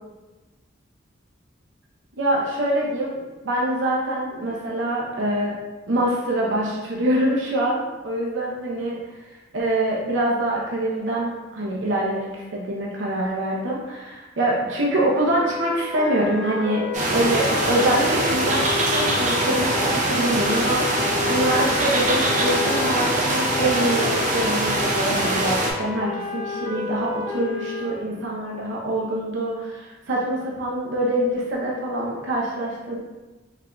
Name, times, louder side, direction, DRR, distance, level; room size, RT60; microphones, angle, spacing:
voice 1, 2.2-5.6 5.9-9.0 9.5-20.8 21.3-33.0, right 1 dB, 80° right, -4 dB, 0.7 m, -25 dB
sound 1, 15.3-27.8, left 4 dB, ahead, 0.9 m, -31 dB
sound 2, 16.9-25.7, right 1 dB, 40° right, 0.6 m, -23 dB
3.8 x 3.3 x 2.3 m, 1.1 s
head